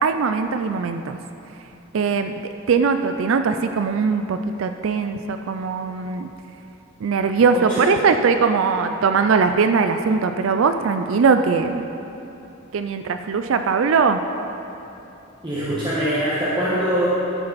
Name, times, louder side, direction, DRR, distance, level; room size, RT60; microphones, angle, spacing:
voice 1, 0.0-1.2 1.9-2.3 2.7-6.3 7.0-11.8 12.7-14.2, right 5 dB, 70° right, 8 dB, 0.4 m, -20 dB
voice 2, 7.5-8.0 15.4-17.1, right 1 dB, 20° right, -10 dB, 1.4 m, -23 dB
13.0 x 6.7 x 4.1 m, 2.9 s
head